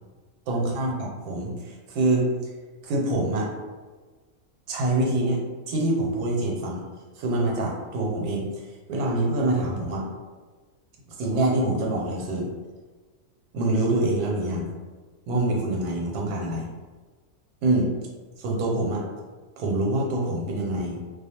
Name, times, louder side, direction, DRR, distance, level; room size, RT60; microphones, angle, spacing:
voice 1, 0.5-2.3 2.8-3.5 4.7-5.4 5.7-6.8 7.2-8.4 8.9-10.1 11.2-12.5 13.5-14.7 15.3-16.7 17.6-17.9 18.4-19.0 19.6-21.0, right 2 dB, 90° right, -1 dB, 1.1 m, -25 dB
2.4 x 2.2 x 2.8 m, 1.4 s
omnidirectional pair, 1.6 m